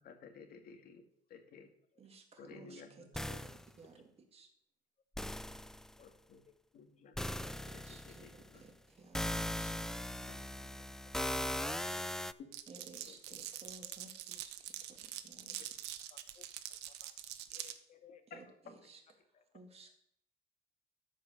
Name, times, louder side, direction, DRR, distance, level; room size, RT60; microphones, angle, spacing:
voice 1, 0.0-1.7 2.4-3.4 6.0-6.4 6.7-7.2 7.6-8.7 10.3-10.4 12.7-13.5 18.3-18.4, left 5 dB, 65° left, 5 dB, 2.0 m, -56 dB
voice 2, 2.0-2.8 3.2-4.0 4.3-4.5 7.2-8.3 8.6-9.7 12.7-15.0 15.2-15.6 15.8-15.9 18.3-18.4 18.9-19.0 19.5-19.9, right 3 dB, 35° right, 3 dB, 2.1 m, -57 dB
sound 1, 3.2-3.7 5.2-5.9 7.2-8.5 9.1-12.3, left 1 dB, 5° left, 0.3 m, -39 dB
Glass, 12.5-17.8, right 13 dB, 85° right, 0.9 m, -45 dB
voice 3, 16.1-16.4 17.0-17.1 17.5-18.2 19.3-19.4, left 7 dB, 45° left, 9 dB, 1.4 m, -62 dB
13.0 x 5.2 x 6.6 m, 0.70 s
cardioid pair, 110°, 17 cm